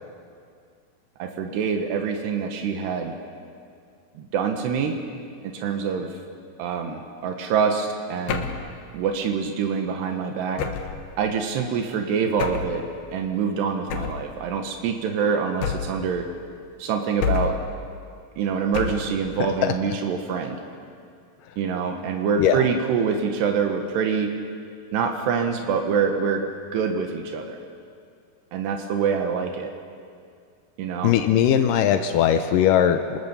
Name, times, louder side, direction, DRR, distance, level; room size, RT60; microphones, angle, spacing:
voice 1, 1.2-3.2 4.1-5.0 5.4-6.2 6.6-8.5 8.9-10.7 11.2-12.9 13.1-16.3 16.8-17.6 18.4-20.6 21.6-24.4 24.9-26.5 26.7-27.6 28.5-29.7 30.8-31.1, right 6 dB, 85° right, 4 dB, 3.4 m, -25 dB
sound 1, 8.3-8.7 10.6-11.0 12.4-12.8 13.9-14.3 15.6-16.1 17.2-17.7 18.7-19.2, left 7 dB, 70° left, 3.0 m, -27 dB
voice 2, 31.0-33.2, left 9 dB, 85° left, 7 dB, 1.9 m, -19 dB
27.5 x 20.0 x 7.0 m, 2.3 s
omnidirectional pair, 4.8 m